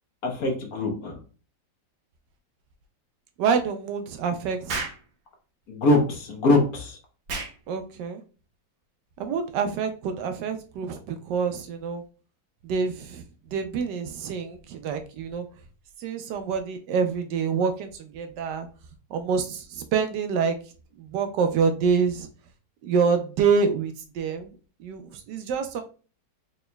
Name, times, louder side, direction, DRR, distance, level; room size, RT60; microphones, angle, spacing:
voice 1, 0.2-1.2 5.7-7.0, left 2 dB, 60° left, 2 dB, 1.4 m, -23 dB
voice 2, 3.4-4.9 7.7-8.2 9.2-12.0 12.6-13.2 13.5-15.4 16.0-18.7 19.1-20.6 21.0-22.3 22.8-24.5 24.8-25.8, right 5 dB, 75° right, 7 dB, 1.2 m, -26 dB
Explosion, 4.7-5.0 7.3-7.6, right 3 dB, 60° right, 0.7 m, -31 dB
4.2 x 3.9 x 2.2 m, 0.37 s
omnidirectional pair, 2.0 m